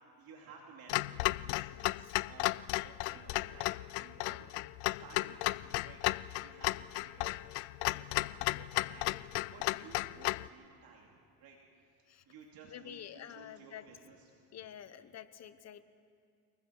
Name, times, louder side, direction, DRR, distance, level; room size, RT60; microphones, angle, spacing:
voice 1, 0.1-1.7 2.2-6.0 6.4-7.4 7.9-14.3, right 5 dB, 55° right, -1 dB, 2.8 m, -56 dB
Clock, 0.9-10.5, left 21 dB, 85° left, 0.5 m, -34 dB
voice 2, 1.7-2.1 12.1-12.2 12.7-13.9 14.5-15.8, left 10 dB, 35° left, 13 dB, 1.0 m, -49 dB
29.5 x 20.0 x 4.6 m, 2.4 s
cardioid pair, 120°, 43 cm